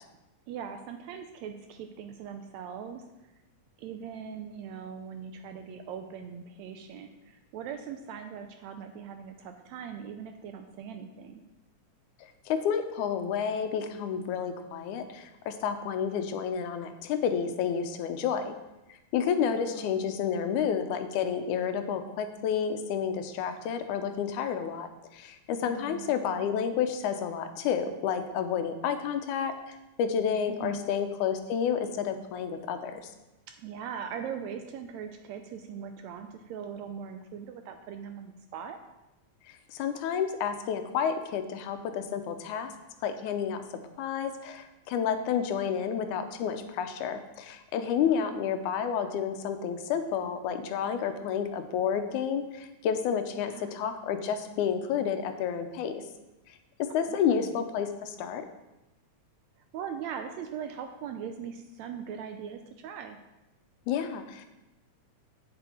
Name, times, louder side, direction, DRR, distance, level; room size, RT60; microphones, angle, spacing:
voice 1, 0.5-3.3 3.8-11.4 19.5-20.0 25.6-26.1 30.5-30.9 33.6-38.8 48.1-48.5 53.4-53.8 57.1-57.6 59.7-63.2, right 7 dB, 80° right, 6 dB, 1.7 m, -40 dB
voice 2, 12.2-18.6 19.1-24.9 25.1-33.0 39.5-42.7 43.0-43.6 44.0-56.0 56.5-56.6 56.9-58.5 63.9-64.5, left 7 dB, 80° left, 8 dB, 2.1 m, -30 dB
8.6 x 7.0 x 4.3 m, 1.0 s
omnidirectional pair, 3.5 m